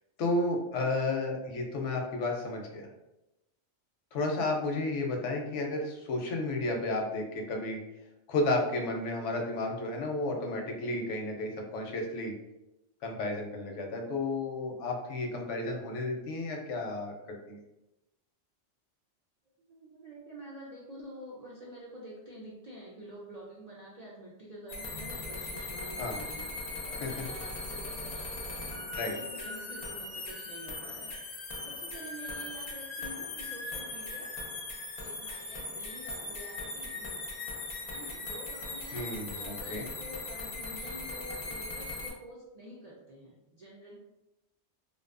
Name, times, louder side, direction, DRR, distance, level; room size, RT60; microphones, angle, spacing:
voice 1, 0.2-2.9 4.1-7.8 8.3-12.3 13.0-17.6 26.0-26.2 27.0-27.1 29.0-29.2 38.9-39.8, left 2 dB, 90° left, 2 dB, 0.9 m, -32 dB
voice 2, 0.8-1.3 19.6-26.4 26.8-34.4 35.0-37.2 37.9-44.0, right 1 dB, 65° right, -6 dB, 0.4 m, -48 dB
sound 1, 24.7-42.1, left 2 dB, 50° left, 0.5 m, -39 dB
2.5 x 2.2 x 2.4 m, 0.94 s
omnidirectional pair, 1.2 m